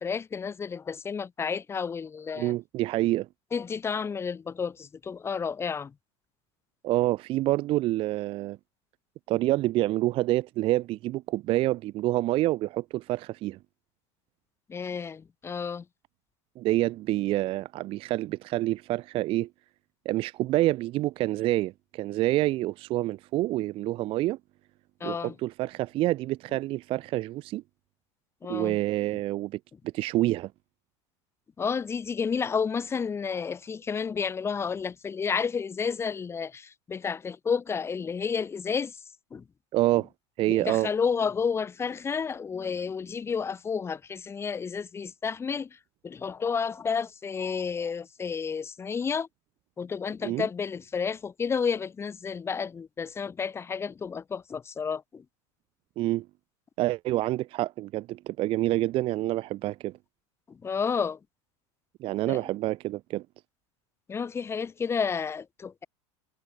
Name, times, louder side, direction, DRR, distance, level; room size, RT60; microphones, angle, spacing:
voice 1, 0.0-2.5 3.5-5.9 14.7-15.8 25.0-25.3 28.4-28.8 31.6-39.0 39.3-39.4 40.5-45.8 46.0-49.3 49.8-55.2 60.5-61.2 62.3-62.4 64.1-65.9, left 6 dB, 15° left, 1.1 m, -31 dB
voice 2, 2.4-3.3 6.8-8.6 9.3-13.6 16.6-19.5 20.1-24.4 25.0-27.6 28.5-29.6 29.9-30.5 39.7-40.1 40.4-40.9 50.2-50.4 56.0-56.3 56.8-59.9 62.0-63.3, right 16 dB, 35° right, 0.5 m, -27 dB
supercardioid pair, 145°, 16 cm